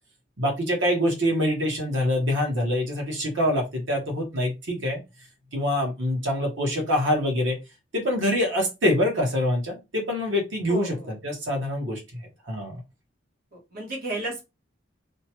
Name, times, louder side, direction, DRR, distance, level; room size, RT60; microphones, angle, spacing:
voice 1, 0.4-5.0 5.5-7.6 7.9-12.8, left 1 dB, 85° right, 1 dB, 1.2 m, -25 dB
voice 2, 10.7-11.1 13.5-14.4, right 2 dB, 50° right, -1 dB, 1.1 m, -33 dB
2.8 x 2.2 x 2.9 m, 0.24 s
head